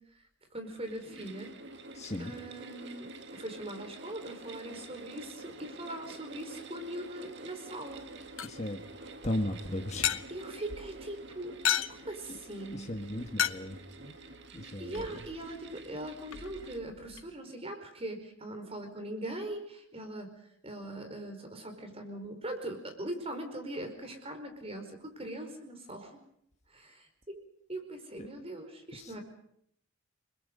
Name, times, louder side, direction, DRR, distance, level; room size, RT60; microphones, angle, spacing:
voice 1, 0.5-1.5 2.2-8.0 10.3-11.6 12.0-12.9 14.8-20.3 20.6-26.2 26.7-27.4 27.7-29.2, right 1 dB, 30° right, 5 dB, 4.9 m, -41 dB
sound 1, 0.6-16.8, right 2 dB, 55° right, 2.1 m, -48 dB
voice 2, 1.9-2.3 8.4-8.8 9.2-10.2 12.7-14.1 14.5-15.2 28.2-28.3 28.9-29.1, left 1 dB, 30° left, 3 dB, 1.4 m, -36 dB
sound 2, 7.9-17.2, left 10 dB, 75° left, 1.0 m, -38 dB
30.0 x 21.5 x 5.4 m, 0.70 s
head